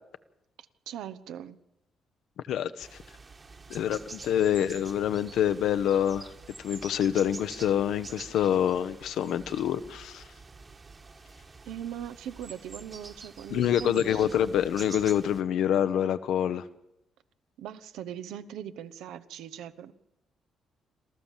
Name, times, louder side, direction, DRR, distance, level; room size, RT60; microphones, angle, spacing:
voice 1, 0.9-1.6 11.7-14.4 17.6-19.9, right 10 dB, 85° right, 11 dB, 0.9 m, -40 dB
voice 2, 2.5-2.9 3.7-6.3 6.6-10.2 13.5-16.6, left 10 dB, 80° left, 11 dB, 0.9 m, -26 dB
sound 1, 2.8-15.4, right 3 dB, 30° right, 1.4 m, -47 dB
27.0 x 13.5 x 7.4 m, 0.87 s
cardioid pair, 90°, 0 cm